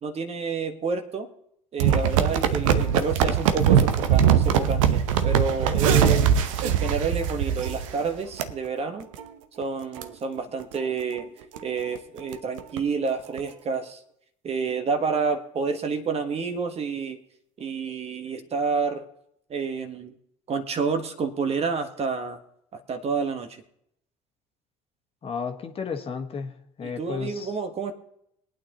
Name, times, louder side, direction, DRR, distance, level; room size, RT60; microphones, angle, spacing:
voice 1, 0.0-1.3 1.7-6.2 6.6-9.1 9.6-11.3 11.6-14.0 14.4-17.2 17.6-19.1 19.5-20.1 20.5-22.4 22.7-23.6 26.8-27.9, right 5 dB, 35° right, 7 dB, 1.3 m, -29 dB
sound 1, 1.8-8.0 8.4-8.5 9.0-9.2 9.6-9.7 10.0-10.1 10.6-10.8 11.2-11.3 11.5-11.6 11.9-12.8 13.4-13.5, right 8 dB, 75° right, 0.8 m, -21 dB
voice 2, 25.2-26.5 26.8-27.5, left 6 dB, 35° left, 5 dB, 1.5 m, -33 dB
22.0 x 9.0 x 3.0 m, 0.74 s
hypercardioid pair, 65°, 17 cm